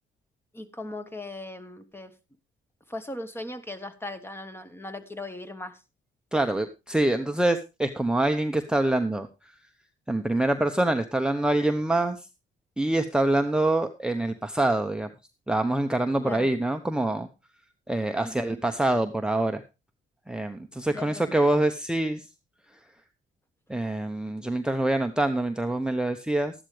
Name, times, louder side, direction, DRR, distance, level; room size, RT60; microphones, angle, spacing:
voice 1, 0.5-2.1 2.9-5.8 16.2-16.5 18.2-18.6 20.9-21.3, left 2 dB, 10° left, 10 dB, 1.4 m, -38 dB
voice 2, 6.3-9.3 10.1-12.2 12.8-15.1 15.5-17.3 17.9-19.6 20.3-22.2 23.7-26.5, right 1 dB, 5° right, 5 dB, 0.9 m, -25 dB
13.0 x 11.5 x 3.3 m, 0.27 s
cardioid pair, 90°, 20 cm